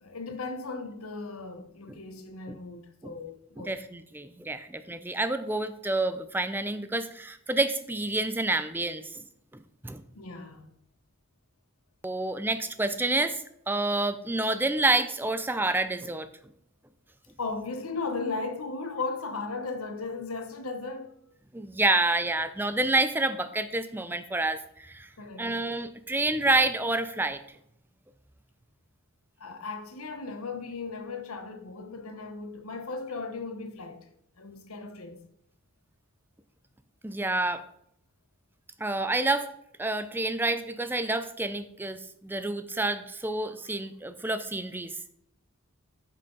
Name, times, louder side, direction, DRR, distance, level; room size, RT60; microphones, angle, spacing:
voice 1, 0.0-3.8 10.1-10.7 17.4-21.1 25.2-25.5 29.4-34.0 34.4-35.2, left 3 dB, 85° left, 1.1 m, -36 dB
voice 2, 3.6-9.2 9.5-10.0 12.0-16.3 21.5-25.1 25.4-27.4 37.0-37.6 38.8-39.5 39.8-44.9, right 2 dB, 10° right, 0.4 m, -28 dB
10.0 x 6.0 x 3.9 m
head